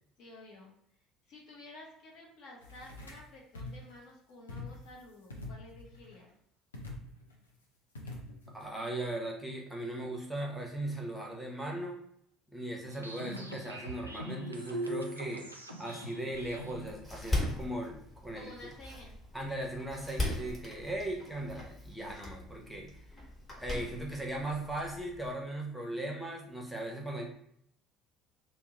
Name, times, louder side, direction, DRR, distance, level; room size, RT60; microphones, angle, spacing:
voice 1, 0.2-1.0 1.3-6.3 18.3-19.2, left 1 dB, 50° left, -1 dB, 0.8 m, -52 dB
sound 1, 2.6-3.3 3.6-3.9 4.5-5.0 5.3-6.2 6.7-7.4 8.0-8.7, left 2 dB, 75° left, 0.5 m, -45 dB
voice 2, 8.5-12.0 12.5-15.5 15.8-18.5 19.3-22.9 23.6-27.2, right 1 dB, ahead, -1 dB, 0.7 m, -38 dB
sound 2, 12.9-16.9, right 1 dB, 85° right, 0.3 m, -41 dB
Door, 16.3-25.3, left 2 dB, 20° left, 1.1 m, -39 dB
2.7 x 2.0 x 3.7 m, 0.71 s
figure-of-eight pair, 60°, 0 cm